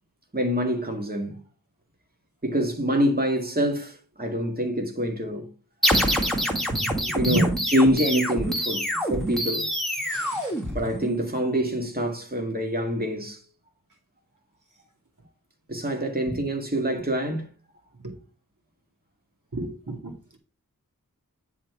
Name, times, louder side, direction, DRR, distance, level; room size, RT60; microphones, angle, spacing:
voice 1, 0.3-1.4 2.4-5.5 7.1-9.7 10.7-13.4 15.7-17.5, equal, 25° right, 2.0 m, -26 dB
sound 1, 5.8-11.3, equal, ahead, 2.0 m, -26 dB
voice 2, 6.7-7.6 10.0-10.6 16.3-16.4 16.9-17.0 18.0-18.2 19.5-20.4, right 1 dB, 60° right, 2.3 m, -30 dB
10.0 x 4.3 x 4.7 m
wide cardioid pair, 45°, 35 cm